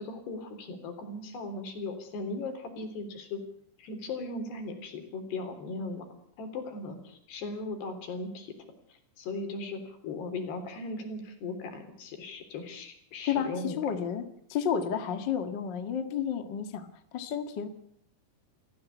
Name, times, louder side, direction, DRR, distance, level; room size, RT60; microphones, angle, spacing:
voice 1, 0.0-3.4 3.8-6.1 6.4-8.5 8.9-13.8, left 3 dB, 75° left, 7 dB, 5.6 m, -38 dB
voice 2, 13.3-14.2 14.5-17.7, left 8 dB, 45° left, 8 dB, 1.6 m, -31 dB
27.5 x 16.0 x 8.4 m, 0.66 s
omnidirectional pair, 4.9 m